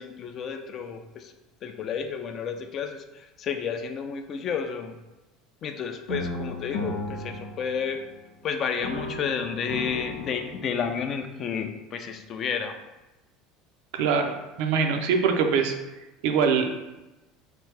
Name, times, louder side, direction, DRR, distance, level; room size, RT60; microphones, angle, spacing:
voice 1, 0.0-1.3 1.6-5.0 5.6-8.0 8.4-12.8, left 7 dB, 40° left, 6 dB, 0.3 m, -31 dB
sound 1, 6.1-8.4 8.8-11.1, left 1 dB, 75° left, 0.7 m, -35 dB
voice 2, 13.9-14.3 14.6-15.7 16.2-16.8, right 6 dB, 60° right, 5 dB, 0.4 m, -23 dB
3.3 x 2.4 x 3.2 m, 1.1 s
figure-of-eight pair, 70°, 0 cm